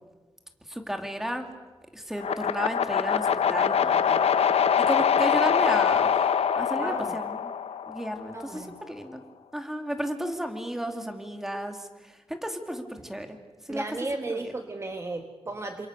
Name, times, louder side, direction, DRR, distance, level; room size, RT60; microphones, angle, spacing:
voice 1, 0.7-1.5 1.9-4.2 4.8-6.1 6.6-7.5 7.9-9.2 9.5-13.4 13.7-13.8 14.3-14.5, equal, 5° right, 5 dB, 2.6 m, -33 dB
sound 1, 2.2-8.3, left 7 dB, 85° left, 1.0 m, -24 dB
voice 2, 6.7-7.2 8.3-8.8 13.7-15.9, right 2 dB, 25° right, 5 dB, 1.5 m, -34 dB
29.0 x 27.0 x 6.7 m, 1.3 s
wide cardioid pair, 160°, 10 cm